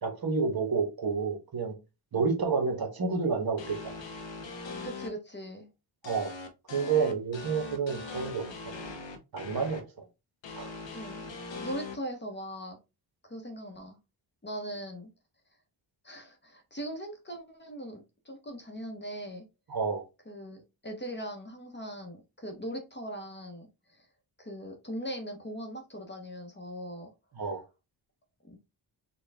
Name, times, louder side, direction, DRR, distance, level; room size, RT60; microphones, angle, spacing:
voice 1, 0.0-1.7 2.1-3.9 6.0-6.3 6.7-8.4 9.3-9.8 10.6-10.7 19.7-20.0 27.4-27.6, right 5 dB, 50° right, 1.2 m, -29 dB
sound 1, 3.6-5.1 6.0-9.8 10.4-11.9, left 3 dB, 70° left, 0.9 m, -41 dB
voice 2, 4.8-5.7 10.9-11.2 11.5-12.8 13.3-14.0 14.4-15.1 16.0-19.4 20.3-24.1 24.4-27.1 27.4-27.5 28.4-28.6, equal, 25° left, 0.9 m, -40 dB
4.4 x 2.3 x 3.4 m
wide cardioid pair, 100°, 46 cm